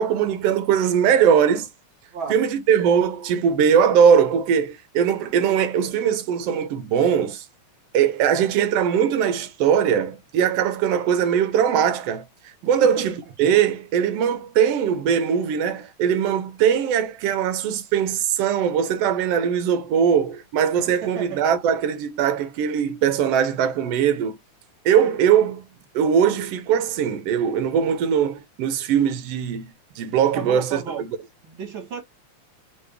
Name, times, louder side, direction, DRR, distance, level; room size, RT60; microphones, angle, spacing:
voice 1, 0.0-1.7 2.3-7.4 7.9-24.4 24.8-25.7 25.9-31.2, right 8 dB, 70° right, 1.6 m, -21 dB
voice 2, 21.0-21.4 30.3-31.0 31.4-32.0, right 6 dB, 50° right, 2.0 m, -32 dB
4.6 x 3.4 x 3.3 m
omnidirectional pair, 3.4 m